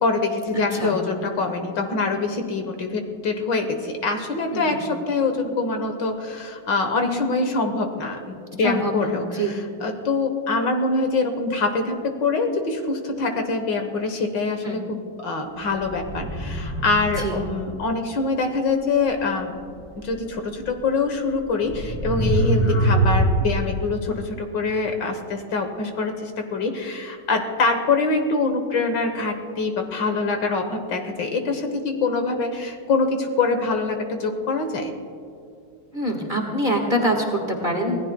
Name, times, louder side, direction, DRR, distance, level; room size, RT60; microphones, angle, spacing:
voice 1, 0.0-19.6 20.0-34.9, left 3 dB, 60° left, 5 dB, 1.7 m, -24 dB
voice 2, 0.5-0.9 4.5-4.8 8.6-9.5 14.6-14.8 17.2-17.4 35.9-38.0, right 1 dB, 25° right, 1 dB, 1.5 m, -25 dB
sound 1, 15.8-17.6 20.6-20.7 21.6-23.5, right 1 dB, 5° left, 2.6 m, -23 dB
25.5 x 17.5 x 2.2 m, 2.5 s
omnidirectional pair, 2.3 m